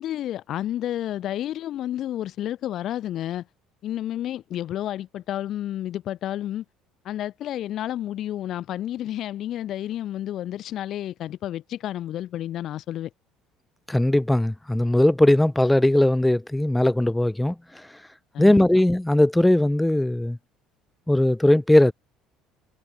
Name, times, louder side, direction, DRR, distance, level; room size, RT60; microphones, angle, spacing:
voice 1, 0.0-3.5 3.8-6.6 7.0-13.1 18.3-18.7, left 12 dB, 50° left, 0.7 m, -30 dB
voice 2, 13.9-17.9 18.4-20.4 21.1-21.9, left 1 dB, 5° left, 0.6 m, -19 dB
figure-of-eight pair, 60°, 0 cm